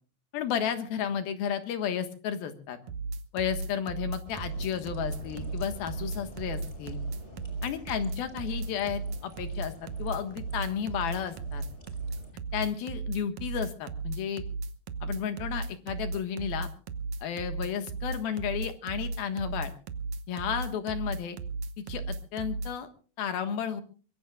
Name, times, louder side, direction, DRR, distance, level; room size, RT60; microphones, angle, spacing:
voice 1, 0.3-2.8 3.3-7.0 7.6-11.6 12.5-14.4 15.0-16.7 17.2-19.7 20.3-21.4 21.9-22.9 23.2-23.8, left 8 dB, 70° left, 8 dB, 3.2 m, -33 dB
sound 1, 2.9-22.7, right 4 dB, 70° right, 1.8 m, -35 dB
sound 2, 4.2-12.3, equal, 15° left, 5.0 m, -47 dB
24.0 x 22.5 x 2.3 m, 0.39 s
omnidirectional pair, 4.6 m